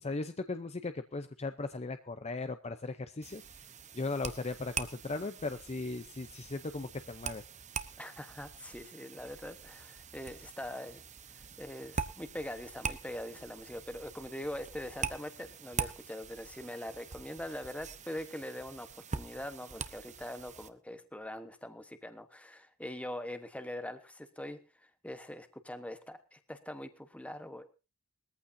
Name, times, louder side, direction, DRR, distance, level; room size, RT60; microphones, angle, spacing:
voice 1, 0.0-3.6 3.9-7.4, left 3 dB, 30° left, 10 dB, 0.7 m, -38 dB
sound 1, 3.2-20.7, right 6 dB, 35° right, 0.9 m, -43 dB
voice 2, 8.0-11.0 11.3-27.7, left 1 dB, 5° left, 9 dB, 1.2 m, -43 dB
21.0 x 14.5 x 2.7 m, 0.29 s
head